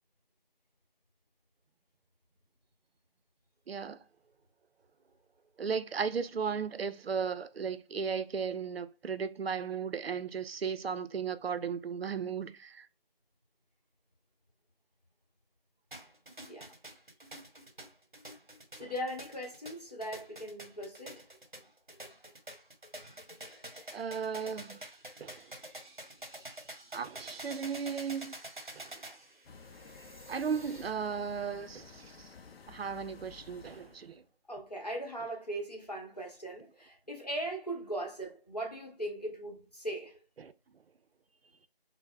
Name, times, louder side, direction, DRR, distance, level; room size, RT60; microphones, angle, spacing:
voice 1, 3.7-4.0 5.6-12.9 23.9-24.8 25.2-25.5 26.9-28.4 28.7-29.1 30.3-32.3 32.7-34.2 40.4-40.5, right 6 dB, 85° right, 0.5 m, -36 dB
sound 1, 15.9-30.9, right 1 dB, 55° right, 0.8 m, -48 dB
voice 2, 18.8-21.2 34.5-40.2, right 1 dB, 45° left, 0.8 m, -39 dB
sound 2, 29.4-34.2, left 5 dB, 85° left, 0.5 m, -53 dB
4.5 x 2.0 x 2.3 m
figure-of-eight pair, 180°, 30 cm